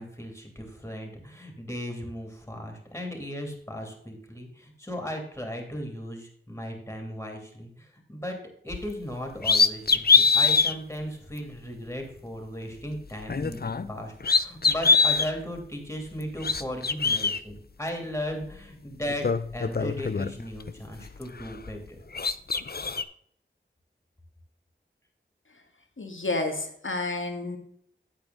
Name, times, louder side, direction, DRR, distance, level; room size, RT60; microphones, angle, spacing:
voice 1, 0.0-8.4 8.6-13.6 13.9-19.3 19.5-22.0, equal, 15° left, 2 dB, 3.0 m, -36 dB
sound 1, 8.7-8.9 9.4-10.7 11.4-11.5 13.2-13.9 14.2-15.3 16.2-17.4 18.5-18.6 19.0-20.7 21.1-21.9 22.1-23.0, left 4 dB, 50° left, 0.5 m, -23 dB
voice 2, 26.0-27.6, left 2 dB, 80° left, 4 dB, 1.9 m, -30 dB
8.9 x 8.5 x 3.9 m, 0.65 s
wide cardioid pair, 55°, 20 cm